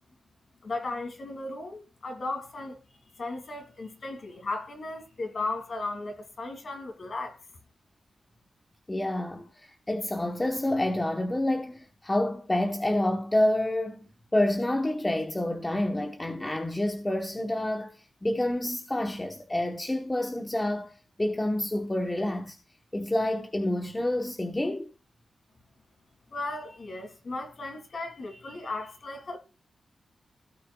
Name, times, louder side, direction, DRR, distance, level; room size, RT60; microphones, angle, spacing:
voice 1, 0.6-2.8 3.2-7.4 26.3-29.4, left 2 dB, 45° left, 2.6 m, -36 dB
voice 2, 8.9-14.0 14.3-18.0 18.2-20.9 21.2-22.6 22.9-24.9, left 1 dB, 15° left, 1.0 m, -28 dB
17.0 x 6.1 x 2.3 m
wide cardioid pair, 145°, 0 cm